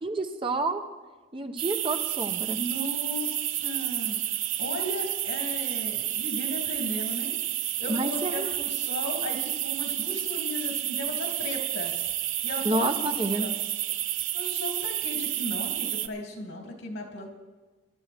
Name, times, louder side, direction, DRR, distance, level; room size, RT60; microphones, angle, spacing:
voice 1, 0.0-0.8 1.3-2.6 7.9-8.5 12.6-13.4, right 2 dB, 25° right, 5 dB, 0.8 m, -29 dB
sound 1, 1.6-16.1, right 12 dB, 80° right, 0.6 m, -30 dB
voice 2, 2.5-4.2 4.6-7.4 7.8-11.9 12.4-13.5 14.3-17.3, left 1 dB, 85° left, 1 dB, 2.6 m, -36 dB
20.5 x 12.5 x 3.4 m, 1.3 s
head